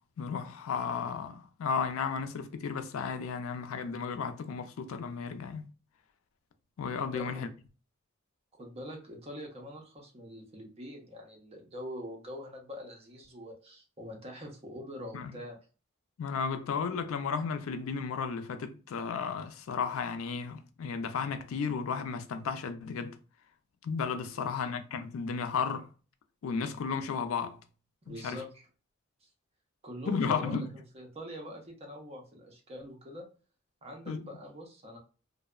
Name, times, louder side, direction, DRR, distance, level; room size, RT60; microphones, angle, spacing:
voice 1, 0.2-5.6 6.8-7.5 15.1-15.3 16.2-23.2 23.8-25.9 26.4-27.6 28.1-28.4 30.1-30.7 34.1-34.2, left 6 dB, 85° left, 0.4 m, -34 dB
voice 2, 7.1-7.5 8.6-15.6 24.3-24.7 28.1-28.7 29.2-29.3 29.8-33.3 33.8-35.0, equal, 30° right, 0.6 m, -44 dB
2.7 x 2.0 x 2.2 m
head